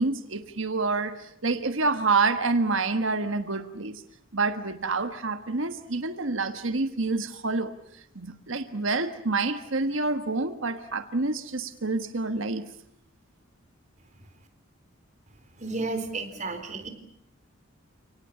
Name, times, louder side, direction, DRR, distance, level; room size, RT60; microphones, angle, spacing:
voice 1, 0.0-4.0 4.3-7.7 8.1-12.6, right 3 dB, 65° right, 9 dB, 1.4 m, -27 dB
voice 2, 15.6-16.9, right 3 dB, 35° right, 7 dB, 3.9 m, -32 dB
30.0 x 18.5 x 8.7 m, 0.74 s
head